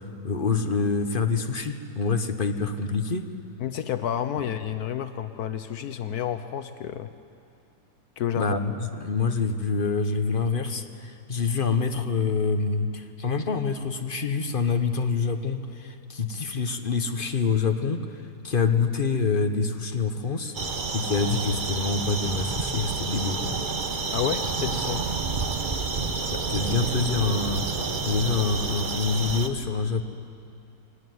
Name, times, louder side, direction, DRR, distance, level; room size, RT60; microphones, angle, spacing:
voice 1, 0.0-3.3 8.4-18.0 18.4-20.5 20.9-23.6 26.3-27.6 28.0-30.0, left 4 dB, 35° left, 7 dB, 1.2 m, -26 dB
voice 2, 3.6-7.1 8.2-8.6 24.1-25.1, left 9 dB, 75° left, 10 dB, 1.3 m, -30 dB
sound 1, 20.5-29.5, right 4 dB, 35° right, 1.1 m, -29 dB
23.5 x 18.0 x 9.4 m, 2.5 s
omnidirectional pair, 1.7 m